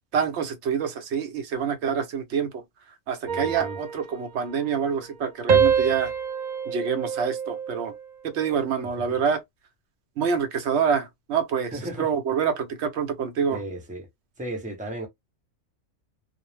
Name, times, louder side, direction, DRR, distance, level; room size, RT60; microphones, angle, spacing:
voice 1, 0.1-2.6 3.1-6.1 6.7-7.9 8.2-9.4 10.2-13.6, right 7 dB, 65° right, 0.8 m, -26 dB
voice 2, 3.3-3.8 11.7-12.1 13.5-14.1 14.4-15.1, right 1 dB, 10° right, 0.6 m, -34 dB
sound 1, 3.3-5.2 5.5-8.1 8.5-8.9, right 6 dB, 90° right, 0.3 m, -27 dB
2.5 x 2.0 x 3.1 m
omnidirectional pair, 1.3 m